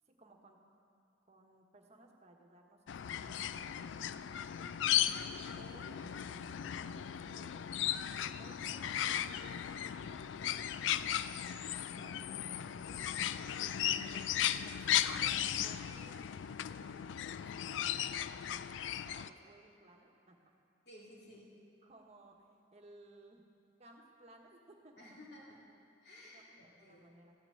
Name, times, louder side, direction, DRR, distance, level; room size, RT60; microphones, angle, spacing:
voice 1, 0.1-0.6 1.3-4.7 5.5-8.0 8.3-11.0 11.8-13.0 13.9-20.5 21.8-22.4 22.7-23.4 23.8-25.2 26.3-27.3, right 1 dB, 35° right, 1 dB, 1.3 m, -60 dB
sound 1, 2.9-19.3, left 10 dB, 80° left, 0.3 m, -36 dB
voice 2, 13.8-14.2 20.9-21.5 25.0-25.6 26.0-27.0, left 1 dB, 65° left, -5 dB, 2.6 m, -55 dB
14.0 x 6.0 x 8.8 m, 2.4 s
head